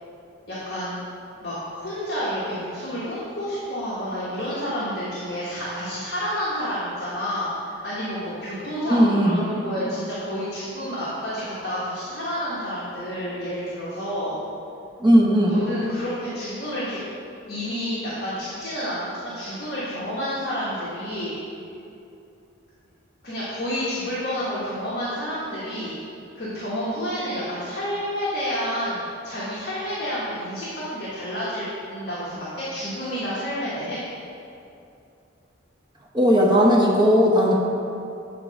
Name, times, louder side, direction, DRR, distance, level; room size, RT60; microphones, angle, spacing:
voice 1, 0.5-1.0 1.4-14.4 15.5-17.0 17.5-21.3 23.2-25.9 26.3-34.0, equal, 55° left, -9 dB, 1.3 m, -29 dB
voice 2, 8.9-9.5 15.0-15.6 36.1-37.5, equal, 20° right, -3 dB, 0.7 m, -17 dB
7.6 x 3.7 x 5.2 m, 2.7 s
head